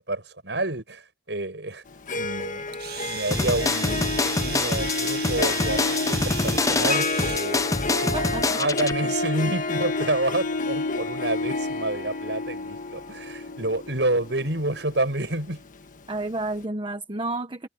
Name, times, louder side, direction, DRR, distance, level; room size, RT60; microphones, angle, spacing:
voice 1, 0.0-1.8 2.1-2.8 3.0-8.2 8.5-15.6, right 2 dB, 80° right, 7.3 m, -29 dB
Harp, 1.9-15.8, left 3 dB, 50° left, 1.4 m, -30 dB
Domestic sounds home sounds, 2.7-7.6, right 10 dB, 60° right, 1.8 m, -36 dB
sound 1, 3.3-8.9, left 3 dB, 20° left, 0.6 m, -26 dB
voice 2, 8.1-8.6 16.1-17.7, right 2 dB, 30° right, 1.1 m, -31 dB
head